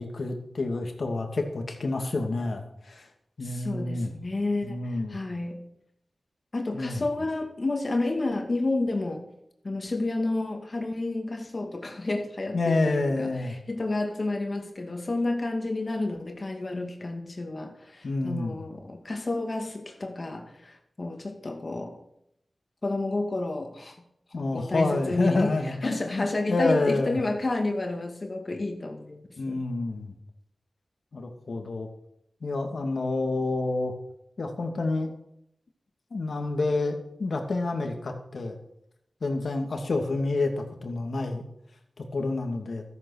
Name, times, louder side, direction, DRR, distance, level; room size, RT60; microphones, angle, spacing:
voice 1, 0.0-3.1 3.4-4.1 4.6-5.2 6.7-7.0 12.5-13.6 18.0-18.7 24.3-27.2 29.4-30.1 31.1-31.9 32.4-33.9 34.4-35.1 36.1-38.6 39.2-41.4 42.0-42.8, left 2 dB, 70° left, 4 dB, 2.4 m, -28 dB
voice 2, 3.4-5.7 6.5-9.2 9.6-22.0 22.8-24.0 24.4-29.2 29.5-29.6, left 2 dB, 50° left, 3 dB, 2.4 m, -30 dB
13.5 x 8.8 x 6.5 m, 0.77 s
cardioid pair, 45°, 0 cm